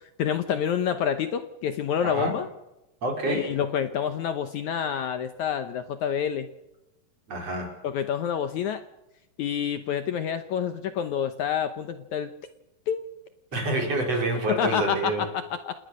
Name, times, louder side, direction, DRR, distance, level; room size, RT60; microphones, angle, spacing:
voice 1, 0.2-2.5 3.3-6.5 7.8-8.8 9.4-12.3 12.9-13.0 14.6-15.7, left 8 dB, 75° left, 10 dB, 1.8 m, -28 dB
voice 2, 2.0-2.4 3.0-3.5 4.8-5.0 7.3-7.8 13.5-15.3, right 2 dB, 40° right, 2 dB, 5.5 m, -27 dB
29.0 x 18.5 x 6.5 m, 0.94 s
omnidirectional pair, 4.5 m